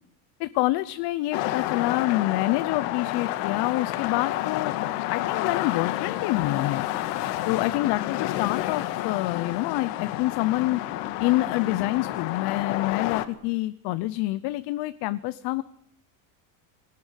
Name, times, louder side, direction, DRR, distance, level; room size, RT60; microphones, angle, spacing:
voice 1, 0.4-4.7 5.1-6.9 7.5-10.8 11.2-15.6, left 18 dB, 55° left, 14 dB, 0.8 m, -27 dB
sound 1, 1.3-13.2, left 14 dB, 85° left, 1.9 m, -30 dB
21.5 x 18.5 x 8.2 m, 0.71 s
cardioid pair, 155°, 48 cm